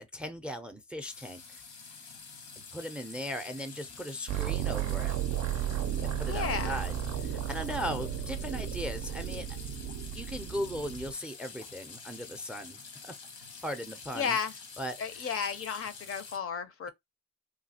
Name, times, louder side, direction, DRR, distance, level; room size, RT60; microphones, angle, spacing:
voice 1, 0.0-1.6 2.7-5.2 6.0-6.9 7.2-9.5 10.1-13.1 13.6-14.4 14.8-15.0, equal, 5° right, 0.4 m, -38 dB
sound 1, 1.0-16.4, left 5 dB, 80° left, 1.0 m, -48 dB
sound 2, 4.3-11.1, right 10 dB, 65° right, 0.4 m, -34 dB
voice 2, 6.3-6.8 14.1-14.5 15.0-16.9, left 6 dB, 50° left, 0.6 m, -33 dB
3.1 x 2.3 x 2.7 m
cardioid pair, 90°, 30 cm